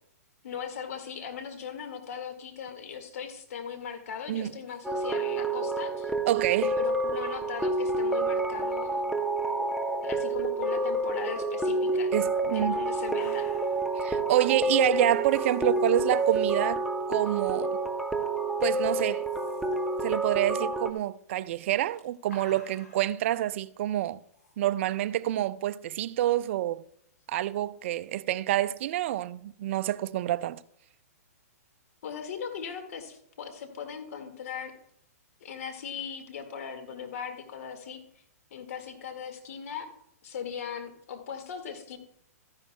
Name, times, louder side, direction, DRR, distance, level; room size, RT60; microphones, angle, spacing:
voice 1, 0.4-6.1 6.8-9.1 10.0-12.1 12.5-13.5 32.0-34.7 35.4-38.0 38.5-39.9 40.2-42.0, left 7 dB, 65° left, 1.9 m, -39 dB
sound 1, 4.8-20.9, right 2 dB, ahead, 0.7 m, -28 dB
voice 2, 6.3-6.8 12.1-12.8 14.0-16.8 17.1-17.8 18.6-19.3 20.0-24.2 24.6-26.8 27.3-30.6, right 13 dB, 50° right, 0.4 m, -27 dB
sound 2, 12.7-12.8 13.0-13.9 15.0-16.7 17.6-17.9 18.2-18.3 19.0-20.2 21.6-23.2 24.3-24.5, left 2 dB, 85° left, 4.2 m, -52 dB
13.5 x 10.5 x 2.2 m
hypercardioid pair, 130°, 9 cm